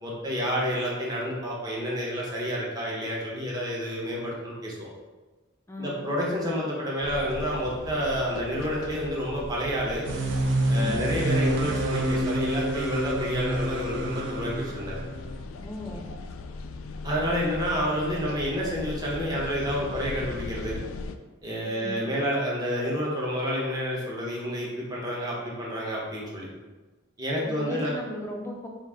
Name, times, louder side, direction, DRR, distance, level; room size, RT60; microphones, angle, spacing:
voice 1, 0.0-4.9 5.8-10.1 10.7-15.0 17.0-20.8 21.4-26.5 27.2-28.0, equal, 20° right, -5 dB, 0.9 m, -29 dB
voice 2, 5.7-6.1 10.7-11.0 15.6-16.1 21.7-22.0 27.4-28.7, left 1 dB, 15° left, 0 dB, 0.5 m, -37 dB
sound 1, 7.0-21.2, left 3 dB, 90° left, 0.3 m, -39 dB
sound 2, 10.0-15.4, right 1 dB, 60° right, 0.5 m, -27 dB
4.9 x 2.5 x 3.5 m, 1.2 s
head